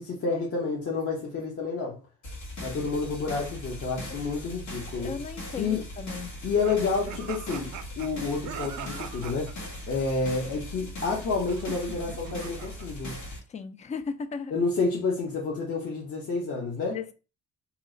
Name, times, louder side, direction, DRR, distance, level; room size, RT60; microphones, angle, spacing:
voice 1, 0.0-2.0 2.6-5.1 5.6-5.8 6.4-13.2 14.5-17.0, left 4 dB, 50° left, 0.9 m, -29 dB
sound 1, 2.2-13.4, left 1 dB, 80° left, 1.3 m, -39 dB
voice 2, 5.0-6.3 13.5-14.5 16.9-17.1, left 5 dB, 25° left, 0.3 m, -36 dB
sound 2, 6.6-9.5 11.5-12.9, right 10 dB, 75° right, 0.5 m, -41 dB
2.9 x 2.0 x 3.7 m
cardioid pair, 90°, 30 cm